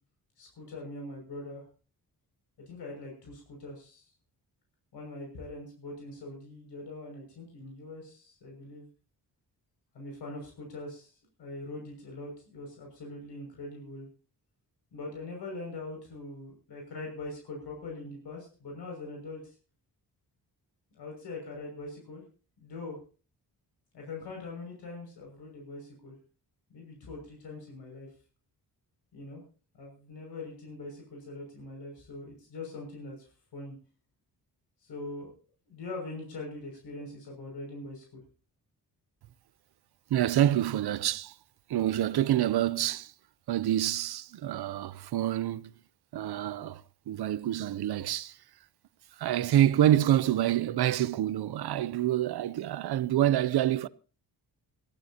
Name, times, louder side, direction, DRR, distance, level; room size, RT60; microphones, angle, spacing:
voice 1, 0.4-1.6 2.7-4.1 4.9-8.9 9.9-11.1 11.4-14.1 14.9-19.5 20.9-22.2 22.6-23.0 23.9-26.1 26.7-28.1 29.1-29.4 29.8-33.1 33.5-33.7 34.8-35.3 35.7-38.2, left 2 dB, 85° left, 6.4 m, -42 dB
voice 2, 40.1-41.3 41.7-43.1 43.5-45.7 46.1-48.4 49.2-53.9, right 12 dB, 70° right, 0.7 m, -27 dB
22.5 x 14.5 x 2.9 m
cardioid pair, 115°, 40 cm